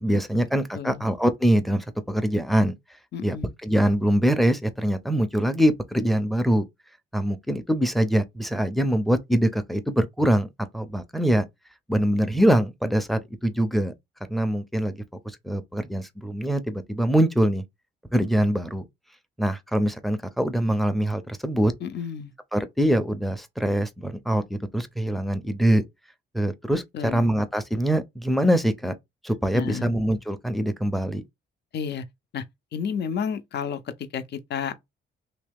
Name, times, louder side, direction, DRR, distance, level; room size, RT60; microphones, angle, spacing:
voice 1, 0.0-2.7 3.2-3.4 3.6-6.6 7.1-10.5 10.7-11.4 11.9-13.9 14.3-17.6 18.1-18.9 19.4-21.7 22.5-25.8 26.3-28.9 29.2-31.2, right 1 dB, ahead, 0.6 m, -23 dB
voice 2, 0.7-1.1 3.1-3.5 21.8-22.3 26.9-27.2 29.5-29.9 31.7-32.0 32.3-32.4 32.7-34.8, left 7 dB, 60° left, 0.7 m, -31 dB
3.0 x 2.8 x 3.5 m
cardioid pair, 90°, 20 cm